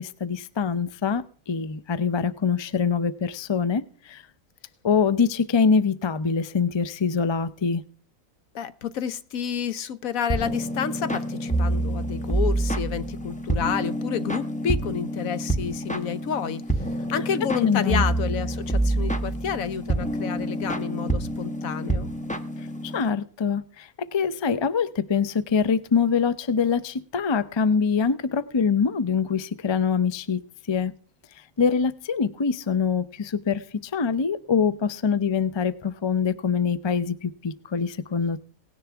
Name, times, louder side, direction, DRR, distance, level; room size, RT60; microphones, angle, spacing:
voice 1, 0.0-4.2 4.8-7.8 17.1-17.2 17.6-18.0 22.8-30.4 30.7-30.9 31.6-38.4, left 6 dB, 45° left, 0.3 m, -24 dB
voice 2, 8.5-16.6 17.1-22.1, left 7 dB, 70° left, 1.2 m, -30 dB
sound 1, 10.3-23.1, right 1 dB, 5° left, 0.8 m, -27 dB
18.0 x 10.5 x 3.5 m
omnidirectional pair, 1.6 m